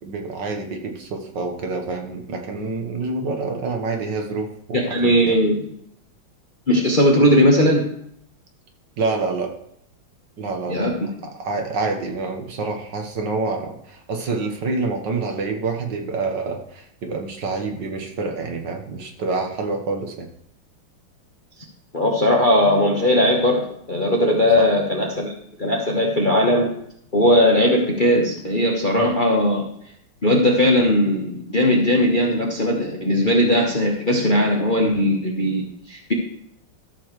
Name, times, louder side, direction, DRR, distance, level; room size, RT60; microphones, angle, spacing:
voice 1, 0.0-5.3 9.0-9.5 10.4-10.9 11.3-20.3 24.6-24.7 33.2-33.3 34.8-34.9, right 3 dB, 60° right, 3 dB, 1.7 m, -27 dB
voice 2, 4.7-5.6 6.7-7.8 10.7-10.9 21.9-25.3 25.6-26.7 27.1-29.7 30.2-36.1, left 1 dB, 30° left, -1 dB, 0.9 m, -18 dB
13.0 x 7.0 x 3.1 m, 0.70 s
omnidirectional pair, 2.3 m